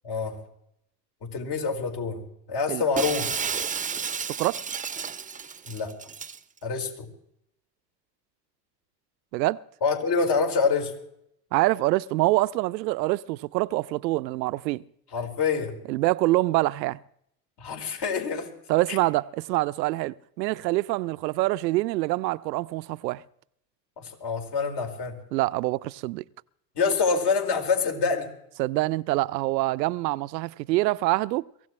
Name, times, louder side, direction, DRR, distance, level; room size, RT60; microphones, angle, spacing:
voice 1, 0.0-0.4 1.3-3.2 5.7-5.9 6.6-7.1 9.8-10.9 15.1-15.7 17.6-18.5 18.9-19.0 24.0-25.1 26.7-28.3, left 5 dB, 50° left, 4.7 m, -26 dB
Shatter, 3.0-6.4, right 6 dB, 15° right, 0.8 m, -32 dB
voice 2, 11.5-14.8 15.9-17.0 18.7-23.2 25.3-26.2 28.6-31.4, right 19 dB, 80° right, 0.6 m, -25 dB
23.5 x 16.0 x 3.2 m
hypercardioid pair, 85°, 50 cm